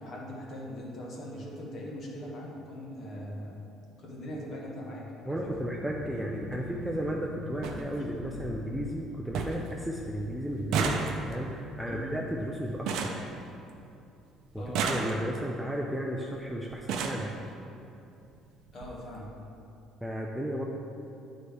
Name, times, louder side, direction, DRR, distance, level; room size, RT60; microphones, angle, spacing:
voice 1, 0.0-3.6 4.0-5.5 8.0-8.2 11.9-12.2 14.5-14.9 18.7-19.3, equal, 35° left, -3 dB, 1.2 m, -41 dB
voice 2, 5.2-13.2 14.5-17.3 20.0-20.6, right 1 dB, ahead, -2 dB, 0.3 m, -34 dB
sound 1, 5.3-11.3, left 2 dB, 75° left, 0.8 m, -43 dB
sound 2, 5.5-5.7 6.9-7.0 7.3-7.4 7.6-7.8 8.3-8.8 9.0-9.1 9.3-9.7 10.0-14.0 14.6-15.5 16.3-16.4 16.7-17.3 18.2-18.3 18.7-18.9 19.1-19.3, right 5 dB, 65° right, 0.5 m, -33 dB
9.8 x 4.1 x 3.3 m, 2.7 s
cardioid pair, 170°, 0 cm